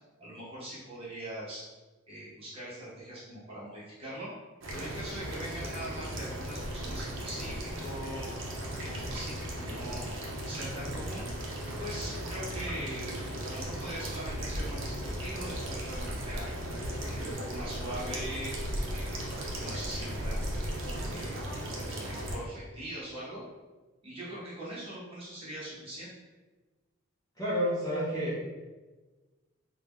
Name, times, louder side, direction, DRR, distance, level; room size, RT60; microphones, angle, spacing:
voice 1, 0.2-1.6 2.1-4.3 4.7-8.4 8.6-10.1 10.5-11.3 11.8-16.5 17.0-18.6 18.9-20.5 21.1-23.4 24.0-26.1, right 1 dB, 25° right, -8 dB, 1.0 m, -42 dB
sound 1, 4.6-22.4, equal, 65° right, 0.6 m, -36 dB
voice 2, 27.4-28.5, equal, 15° left, -8 dB, 0.6 m, -30 dB
2.7 x 2.2 x 3.5 m, 1.3 s
head